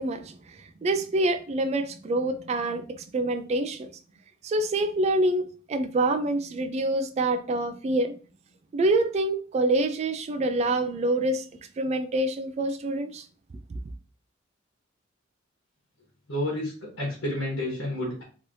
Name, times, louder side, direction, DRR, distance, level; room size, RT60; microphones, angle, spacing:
voice 1, 0.0-3.9 4.4-8.1 8.7-11.5 11.8-13.3, right 2 dB, 35° right, 0.3 m, -26 dB
voice 2, 16.3-18.2, left 1 dB, 85° left, 1.3 m, -30 dB
3.1 x 2.9 x 2.6 m
head